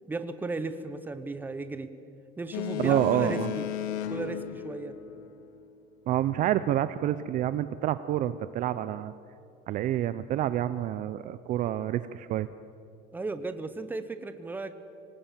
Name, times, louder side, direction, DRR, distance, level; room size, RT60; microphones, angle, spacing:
voice 1, 0.1-1.9 2.4-3.7 4.1-4.9 13.1-14.7, right 3 dB, 10° right, 10 dB, 0.9 m, -35 dB
Boat Water vehicle, 2.5-5.6, left 10 dB, 75° left, 1.2 m, -35 dB
voice 2, 2.8-3.5 6.1-9.1 9.7-12.5, right 12 dB, 40° right, 13 dB, 0.5 m, -28 dB
26.0 x 18.0 x 7.4 m, 2.6 s
cardioid pair, 170°, 21 cm